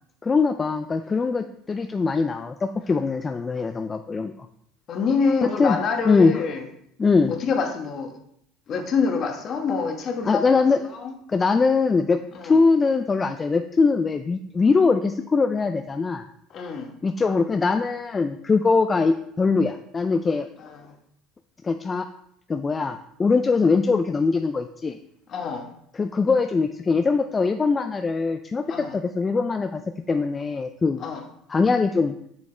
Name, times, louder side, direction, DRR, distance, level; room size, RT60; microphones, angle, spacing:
voice 1, 0.2-4.3 5.6-5.8 6.1-6.3 7.0-7.3 10.3-10.8 11.3-16.2 17.0-20.5 21.6-22.1 22.5-25.0 26.0-29.8 30.1-31.0 31.5-32.1, left 4 dB, 25° left, 8 dB, 0.3 m, -22 dB
voice 2, 4.9-6.7 7.3-8.1 8.7-10.6 10.9-11.1 12.3-12.6 16.5-16.9 20.6-20.9 25.3-25.7 28.7-29.0 31.0-31.2, left 5 dB, 45° left, 4 dB, 1.1 m, -26 dB
7.1 x 6.2 x 3.2 m, 0.73 s
supercardioid pair, 105°, 0 cm